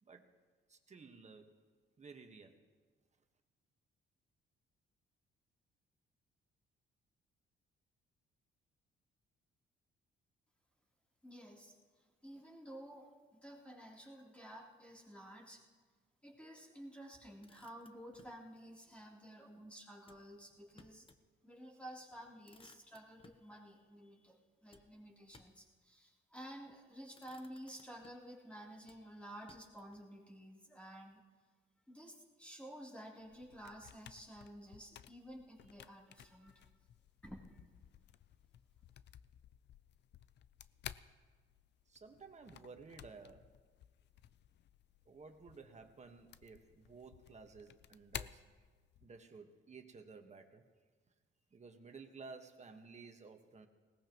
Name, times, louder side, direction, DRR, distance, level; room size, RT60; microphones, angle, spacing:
voice 1, 0.7-1.6 2.0-2.6 41.9-43.5 45.0-48.4 49.0-50.6 51.5-53.7, right 4 dB, 35° right, 5 dB, 1.5 m, -55 dB
voice 2, 11.2-11.7 12.2-15.6 16.2-21.0 21.4-31.2 31.9-36.7 37.2-37.6, equal, 5° left, -4 dB, 3.5 m, -52 dB
Motor vehicle (road), 17.4-18.4 20.0-21.3 21.7-21.8 22.1-23.5 24.7-25.7 26.5-26.8 27.1-28.4 28.8-30.0, left 3 dB, 25° left, 1.0 m, -65 dB
sound 1, 33.2-49.2, left 10 dB, 60° left, 0.5 m, -55 dB
20.0 x 18.0 x 3.1 m, 1.4 s
cardioid pair, 90°, 20 cm